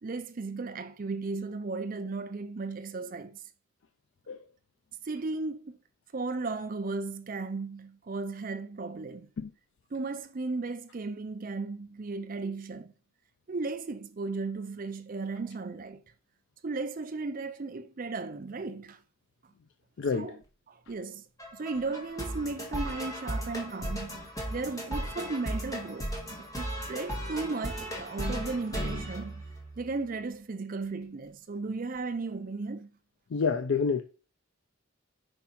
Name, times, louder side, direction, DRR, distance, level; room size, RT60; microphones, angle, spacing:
voice 1, 0.0-3.4 5.0-5.8 6.1-9.3 9.9-12.9 13.5-16.0 16.6-19.0 20.1-20.4 20.7-21.2 21.5-24.2 24.5-29.4 29.8-32.9, right 3 dB, 40° right, 0.4 m, -35 dB
voice 2, 20.0-20.3 33.3-34.0, left 5 dB, 60° left, 0.4 m, -28 dB
sound 1, 21.4-30.0, right 1 dB, 15° left, 1.4 m, -36 dB
5.4 x 4.6 x 4.4 m
head